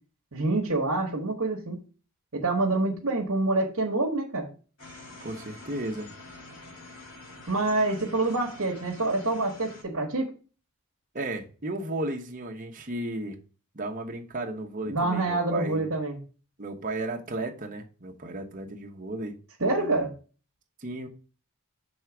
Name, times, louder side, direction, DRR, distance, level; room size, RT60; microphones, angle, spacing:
voice 1, 0.3-1.8 2.3-4.5 7.5-10.3 14.9-16.2 19.6-20.1, right 2 dB, 70° right, 1.2 m, -26 dB
sound 1, 4.8-9.8, left 2 dB, 70° left, 2.6 m, -47 dB
voice 2, 5.2-6.1 11.1-13.4 13.7-15.9 16.6-20.1 20.8-21.1, right 2 dB, 35° right, 1.0 m, -34 dB
6.3 x 3.4 x 6.0 m
head